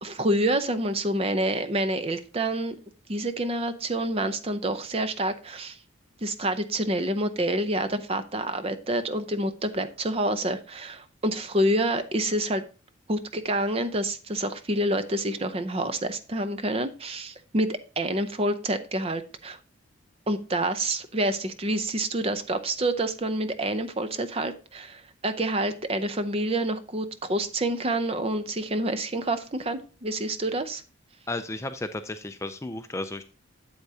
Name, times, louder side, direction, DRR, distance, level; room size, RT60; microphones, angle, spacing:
voice 1, 0.0-2.8 3.1-5.8 6.2-12.6 13.1-19.6 20.3-30.8, right 1 dB, 30° right, 10 dB, 0.6 m, -28 dB
voice 2, 31.3-33.2, left 2 dB, 15° left, 8 dB, 0.4 m, -33 dB
8.1 x 8.0 x 2.8 m, 0.36 s
head